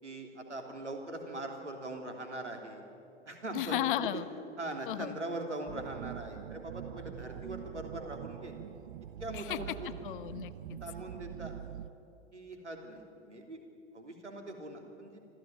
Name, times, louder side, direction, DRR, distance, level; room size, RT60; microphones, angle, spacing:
voice 1, 0.0-2.9 3.2-3.8 4.1-4.2 4.6-8.5 9.2-9.9 10.8-11.5 12.3-13.6 13.9-15.2, right 2 dB, 80° right, 4 dB, 3.3 m, -41 dB
voice 2, 3.5-4.3 4.9-5.2 9.3-9.6 10.0-10.8, left 13 dB, 50° left, 14 dB, 1.0 m, -34 dB
sound 1, 5.7-11.9, right 11 dB, 50° right, 0.7 m, -44 dB
25.5 x 15.0 x 9.2 m, 2.7 s
figure-of-eight pair, 100°, 34 cm